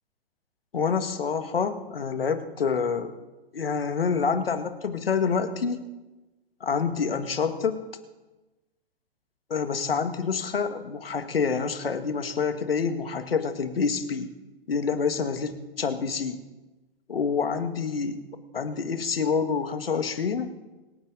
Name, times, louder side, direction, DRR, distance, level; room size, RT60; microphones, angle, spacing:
voice 1, 0.7-3.1 3.5-5.9 6.6-7.8 9.5-14.3 14.7-15.5 15.8-16.4 17.1-18.2 18.5-20.5, left 5 dB, 75° left, 8 dB, 1.8 m, -27 dB
26.0 x 10.0 x 3.9 m, 1.1 s
figure-of-eight pair, 120°, 30 cm